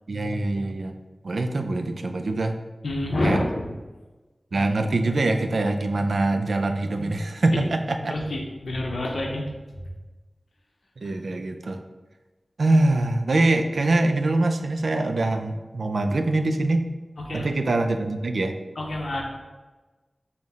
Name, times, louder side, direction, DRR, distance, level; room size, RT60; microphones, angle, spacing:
voice 1, 0.1-0.9 1.2-2.6 3.2-3.4 4.5-8.1 11.0-11.8 12.6-16.9 17.3-18.6, right 2 dB, 80° right, 6 dB, 0.3 m, -24 dB
voice 2, 2.8-3.7 8.1-9.4 17.3-17.5 18.8-19.2, left 1 dB, 75° left, 0 dB, 0.6 m, -27 dB
5.6 x 2.1 x 3.4 m, 1.2 s
wide cardioid pair, 85°, 0 cm